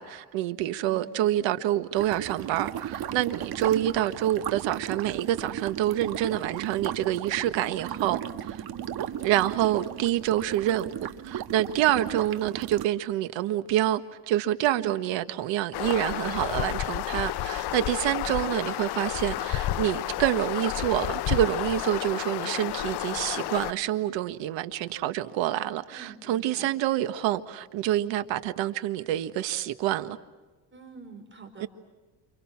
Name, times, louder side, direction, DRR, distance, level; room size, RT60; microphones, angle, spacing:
voice 1, 0.0-8.6 9.2-10.9 11.2-14.0 14.3-30.2 31.6-31.7, right 13 dB, 85° right, 1.6 m, -27 dB
voice 2, 0.8-1.2 3.4-3.7 8.7-9.0 18.0-18.2 25.9-26.7 30.7-31.7, right 5 dB, 25° right, 4.9 m, -47 dB
sound 1, 2.0-12.9, right 10 dB, 55° right, 1.6 m, -35 dB
sound 2, 15.7-23.7, left 14 dB, 60° left, 0.9 m, -31 dB
29.0 x 28.5 x 6.0 m
cardioid pair, 130°, 44 cm